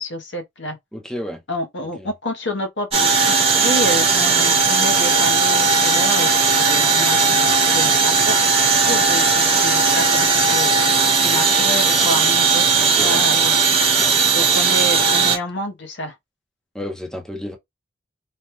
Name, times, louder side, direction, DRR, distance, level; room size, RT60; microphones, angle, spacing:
voice 1, 0.0-0.8 1.5-8.3 8.8-10.7 11.2-13.6 14.3-16.1, left 1 dB, 60° left, 0.8 m, -28 dB
voice 2, 0.9-1.4 2.0-2.1 12.8-13.2 14.0-14.2 16.7-17.6, left 1 dB, 5° left, 0.6 m, -31 dB
sound 1, 2.9-15.4, right 4 dB, 30° right, 0.9 m, -17 dB
3.3 x 2.2 x 2.9 m
head